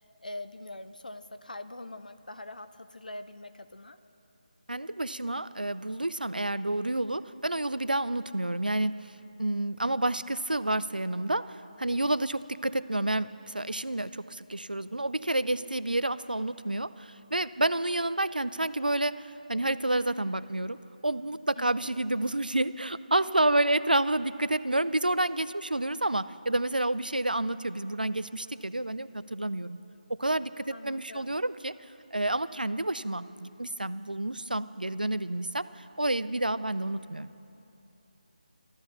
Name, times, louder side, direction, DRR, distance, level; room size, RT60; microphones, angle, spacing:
voice 1, 0.2-4.0 21.6-21.9 30.7-31.3, left 2 dB, 65° left, 11 dB, 0.7 m, -43 dB
voice 2, 4.7-9.1 9.4-20.8 21.0-29.8 30.1-31.7 32.1-37.3, right 1 dB, 80° right, 15 dB, 0.5 m, -29 dB
14.0 x 12.5 x 6.8 m, 2.8 s
figure-of-eight pair, 155°, 5 cm